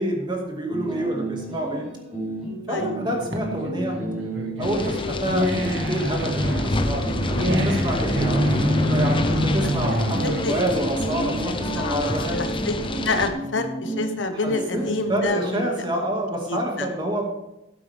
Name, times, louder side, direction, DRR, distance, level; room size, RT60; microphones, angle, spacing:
voice 1, 0.0-1.9 2.7-4.0 4.6-12.4 14.3-17.3, right 1 dB, 25° right, 0 dB, 2.2 m, -28 dB
sound 1, 0.7-15.2, right 1 dB, ahead, 4.5 m, -33 dB
sound 2, 3.0-12.1, equal, 85° right, 1.7 m, -27 dB
sound 3, 4.6-13.3, left 1 dB, 25° left, 0.9 m, -27 dB
voice 2, 9.2-9.6 10.4-10.5 11.8-12.7 13.0-15.6 16.5-16.9, left 3 dB, 85° left, 7 dB, 1.2 m, -28 dB
12.5 x 9.0 x 3.6 m, 0.95 s
head